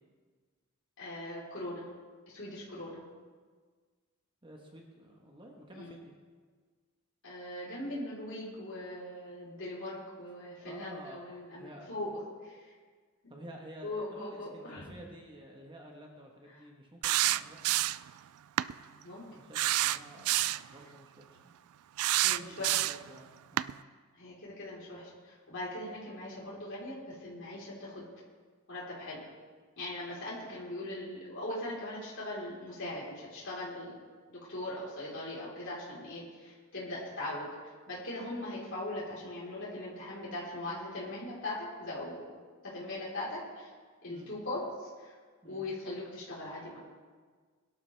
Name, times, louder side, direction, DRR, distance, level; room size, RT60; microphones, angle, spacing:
voice 1, 1.0-1.9 2.3-3.0 5.8-6.0 7.2-12.6 13.8-14.9 19.0-19.2 22.2-22.9 24.2-28.0 28.7-29.2 29.8-33.9 34.3-37.5 37.9-42.3 42.6-43.7 44.0-45.1 45.4-46.8, left 1 dB, 55° left, -8 dB, 4.2 m, -40 dB
voice 2, 4.4-6.1 10.6-11.3 11.5-11.9 13.3-17.8 19.3-21.5 22.5-23.8 44.1-44.3 45.4-45.6, equal, 20° right, 0 dB, 1.3 m, -51 dB
sound 1, 17.0-18.1 18.6-18.7 19.5-20.7 22.0-23.1 23.6-23.7, right 15 dB, 75° right, 0.3 m, -28 dB
21.5 x 11.5 x 3.5 m, 1.5 s
head